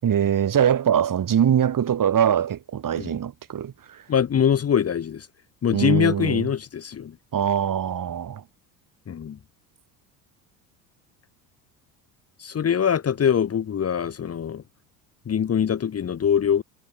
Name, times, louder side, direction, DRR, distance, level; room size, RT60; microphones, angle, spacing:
voice 1, 0.0-4.0 5.7-6.5 7.3-8.4, right 9 dB, 40° right, 6.5 m, -22 dB
voice 2, 4.1-5.3 5.6-7.1 9.1-9.4 12.4-14.6 15.3-16.6, left 8 dB, 30° left, 1.5 m, -23 dB
hypercardioid pair, 65°, 47 cm